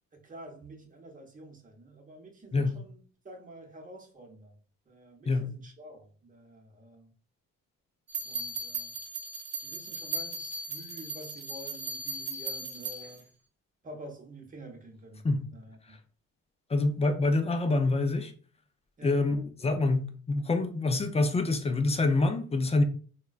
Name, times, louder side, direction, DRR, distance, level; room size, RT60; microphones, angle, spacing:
voice 1, 0.1-3.0 3.2-4.6 4.9-7.1 8.2-8.9 9.6-13.2 13.8-16.0 19.0-19.3, right 1 dB, 25° right, 0.8 m, -48 dB
sound 1, 8.1-13.2, right 3 dB, 60° right, 0.9 m, -37 dB
voice 2, 16.7-18.3 19.0-22.8, left 2 dB, 20° left, 0.4 m, -26 dB
3.5 x 2.2 x 2.4 m
cardioid pair, 90°, 30 cm